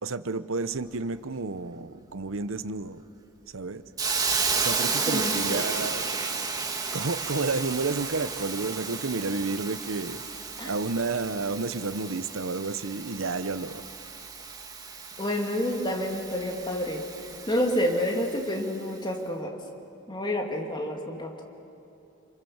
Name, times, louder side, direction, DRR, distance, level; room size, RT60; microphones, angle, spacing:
voice 1, 0.0-3.0 3.5-3.8 4.6-6.1 6.9-10.2 10.6-13.8, right 3 dB, 80° right, 13 dB, 0.9 m, -31 dB
Hiss, 4.0-18.8, right 4 dB, 20° right, 1.5 m, -33 dB
voice 2, 5.1-5.9 10.6-10.7 15.2-17.1 17.5-19.6 20.1-21.4, left 1 dB, 20° left, 2 dB, 2.5 m, -29 dB
29.0 x 25.0 x 7.3 m, 2.8 s
head